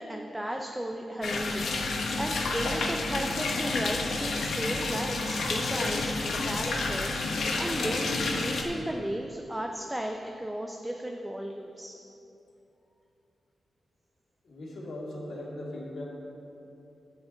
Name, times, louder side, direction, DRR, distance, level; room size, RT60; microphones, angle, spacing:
voice 1, 0.0-11.9, right 1 dB, 10° right, 2 dB, 0.5 m, -35 dB
sound 1, 1.2-8.6, left 3 dB, 85° left, 1.1 m, -30 dB
voice 2, 14.4-16.0, left 1 dB, 65° left, -5 dB, 2.3 m, -39 dB
10.5 x 4.8 x 7.7 m, 2.9 s
wide cardioid pair, 105°, 0 cm